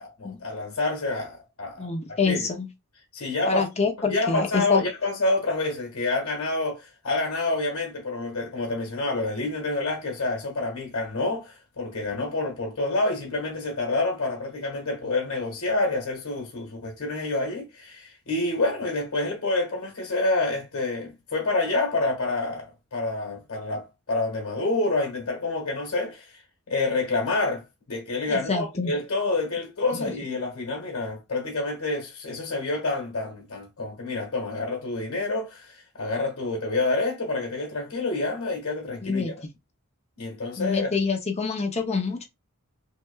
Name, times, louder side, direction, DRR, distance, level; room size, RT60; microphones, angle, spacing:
voice 1, 0.0-1.9 2.2-2.5 3.1-3.7 4.1-26.4 26.7-39.3 40.2-40.9, left 2 dB, 80° left, 1.4 m, -28 dB
voice 2, 1.8-2.7 3.5-4.8 28.3-28.9 29.9-30.1 39.0-39.3 40.6-42.2, left 4 dB, 30° left, 0.7 m, -26 dB
5.7 x 2.2 x 2.3 m
head